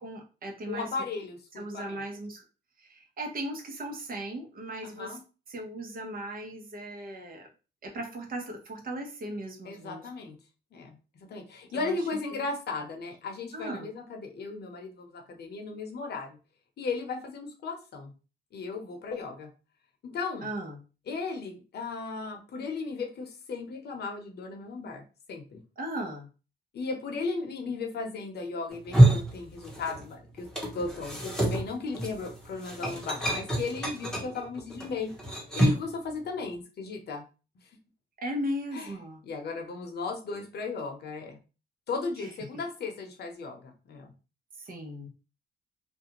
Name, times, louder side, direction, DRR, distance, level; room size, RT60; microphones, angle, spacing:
voice 1, 0.0-0.9 1.6-2.4 2.8-5.2 5.5-7.5 7.8-10.0 11.7-12.0 12.4-12.5 13.5-13.9 20.4-20.8 25.8-26.3 38.2-39.2 42.2-42.3 44.6-45.1, right 1 dB, 45° right, 2 dB, 0.9 m, -37 dB
voice 2, 0.7-2.0 4.8-5.2 9.6-10.4 10.7-16.4 16.8-18.1 18.5-19.5 20.0-20.5 21.1-25.6 26.7-30.5 30.7-35.1 35.6-37.2 38.7-38.9 39.2-41.4 41.9-44.1, left 4 dB, 55° left, 3 dB, 0.8 m, -36 dB
sound 1, 28.7-30.1 30.4-35.9, right 1 dB, 5° left, 0.9 m, -26 dB
2.5 x 2.2 x 2.9 m, 0.33 s
cardioid pair, 90°, 20 cm